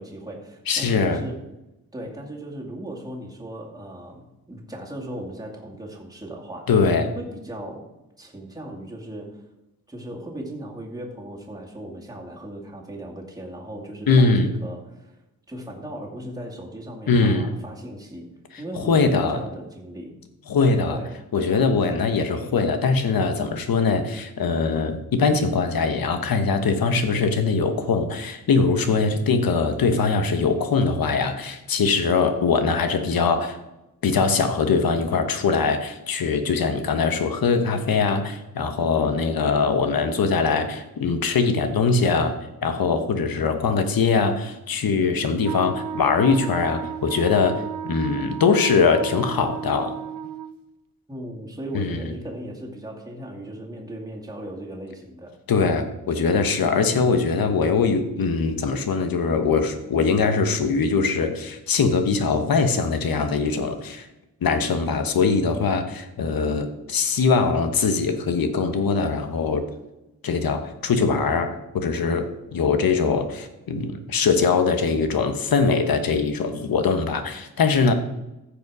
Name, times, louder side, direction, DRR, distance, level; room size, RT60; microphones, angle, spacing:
voice 1, 0.0-1.4 1.9-6.7 7.0-7.9 8.2-9.4 9.9-15.2 15.5-18.3 18.6-20.2 20.9-21.1 51.1-55.4 56.7-57.1, right 1 dB, 10° right, -2 dB, 2.3 m, -37 dB
voice 2, 0.7-1.2 6.7-7.1 14.1-14.5 17.1-17.5 18.8-19.4 20.5-21.0 21.3-33.6 34.0-42.3 42.6-50.0 51.7-52.1 55.5-64.1 64.4-69.7 70.2-77.9, left 4 dB, 75° left, 7 dB, 1.2 m, -22 dB
Wind instrument woodwind instrument, 45.4-50.6, right 9 dB, 70° right, 0.6 m, -34 dB
14.5 x 5.2 x 4.8 m, 0.94 s
wide cardioid pair, 110°, 36 cm